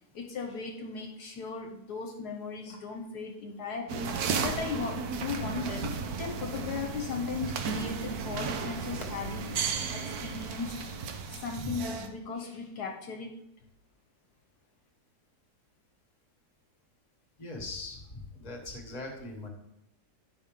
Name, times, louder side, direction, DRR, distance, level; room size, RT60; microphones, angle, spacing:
voice 1, 0.1-4.1 4.4-5.9 6.2-9.6 9.9-10.8 11.3-13.3, left 5 dB, 70° left, 2 dB, 1.3 m, -37 dB
sound 1, 3.9-12.1, right 5 dB, 65° right, 1.2 m, -34 dB
voice 2, 17.4-19.5, left 2 dB, 25° left, 2 dB, 1.4 m, -40 dB
9.9 x 5.7 x 3.6 m, 0.80 s
omnidirectional pair, 1.8 m